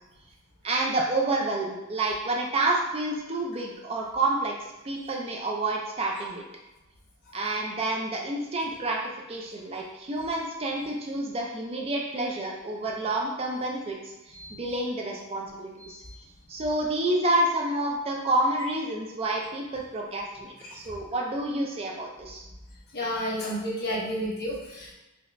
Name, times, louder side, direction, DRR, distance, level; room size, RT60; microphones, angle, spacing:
voice 1, 0.6-4.5 4.8-6.4 7.3-9.0 9.3-14.0 14.5-16.0 16.5-22.4, right 2 dB, 25° right, 0 dB, 0.4 m, -29 dB
voice 2, 15.8-16.2 20.6-20.7 22.9-24.9, equal, 50° left, -6 dB, 1.1 m, -32 dB
4.9 x 2.1 x 2.5 m, 1.0 s
head